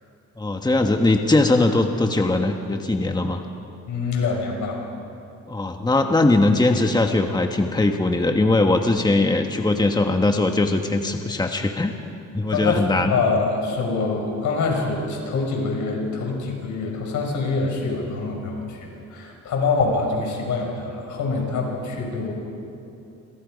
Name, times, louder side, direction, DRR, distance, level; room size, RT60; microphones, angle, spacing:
voice 1, 0.4-3.4 5.5-11.9 12.3-13.1, left 2 dB, 15° left, 4 dB, 1.5 m, -20 dB
voice 2, 3.9-4.8 12.5-22.3, left 4 dB, 75° left, 1 dB, 6.4 m, -25 dB
29.0 x 25.5 x 5.3 m, 2.7 s
cardioid pair, 90°, 30 cm